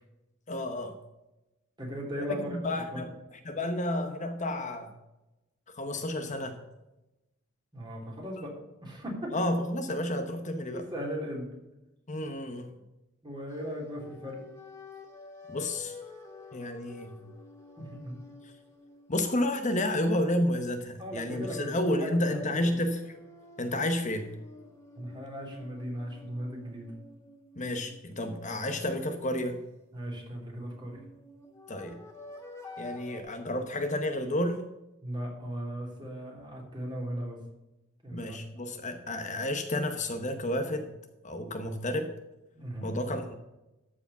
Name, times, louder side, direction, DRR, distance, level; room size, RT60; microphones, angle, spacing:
voice 1, 0.5-1.0 2.5-3.1 3.4-4.9 5.7-6.6 9.3-10.9 12.1-12.8 15.5-15.9 16.5-17.2 18.4-18.5 19.1-23.2 23.6-24.3 27.6-29.6 31.7-32.0 32.8-34.6 38.1-40.9 41.2-42.1 42.8-43.3, left 1 dB, 40° left, 6 dB, 0.9 m, -31 dB
voice 2, 1.8-2.5 2.9-3.1 7.7-9.3 10.7-11.5 13.2-14.4 17.8-18.2 21.0-22.8 25.0-26.9 29.9-31.0 35.0-37.4 38.0-38.4 42.5-42.9, equal, 25° right, -1 dB, 3.1 m, -37 dB
sound 1, 13.5-20.5 21.0-28.9 30.6-33.2, left 2 dB, 15° left, 1.9 m, -50 dB
13.5 x 5.0 x 7.1 m, 0.97 s
head